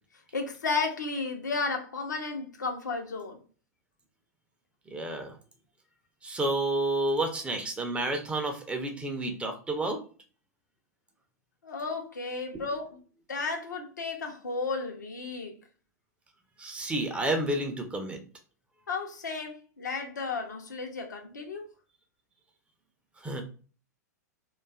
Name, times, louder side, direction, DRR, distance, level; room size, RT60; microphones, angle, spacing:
voice 1, 0.3-3.4 11.6-12.9 13.3-15.5 18.9-21.6, left 4 dB, 80° left, 0.6 m, -33 dB
voice 2, 4.9-5.4 6.2-10.0 12.5-12.6 16.6-18.2 23.2-23.4, right 2 dB, 10° right, 0.4 m, -30 dB
2.5 x 2.3 x 2.3 m
figure-of-eight pair, 100°, 10 cm